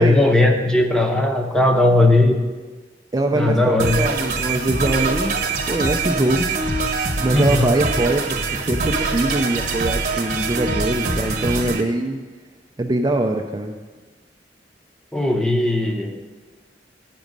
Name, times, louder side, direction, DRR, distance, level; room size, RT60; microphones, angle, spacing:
voice 1, 0.0-2.4 3.3-4.0 7.3-7.7 15.1-16.2, left 1 dB, 5° left, 3 dB, 0.7 m, -17 dB
voice 2, 3.1-5.4 5.7-6.5 7.2-8.4 8.7-12.2 12.8-13.8, right 2 dB, 20° right, 3 dB, 0.4 m, -22 dB
sound 1, 3.8-11.8, right 3 dB, 50° right, 1.1 m, -24 dB
9.2 x 6.0 x 5.2 m, 1.3 s
head